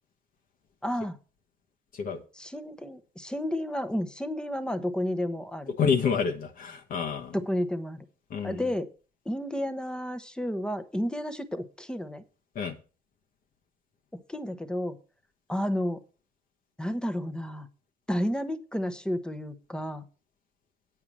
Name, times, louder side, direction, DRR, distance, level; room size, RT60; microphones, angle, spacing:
voice 1, 0.8-1.2 2.4-5.7 7.3-8.0 8.4-8.9 9.2-12.2 14.3-15.0 15.5-16.0 16.8-17.7 18.1-20.0, equal, 5° left, 10 dB, 1.0 m, -31 dB
voice 2, 5.8-7.3 8.3-8.7 12.5-12.8, left 6 dB, 55° left, 4 dB, 1.2 m, -28 dB
8.9 x 4.8 x 7.3 m, 0.36 s
cardioid pair, 110°, 17 cm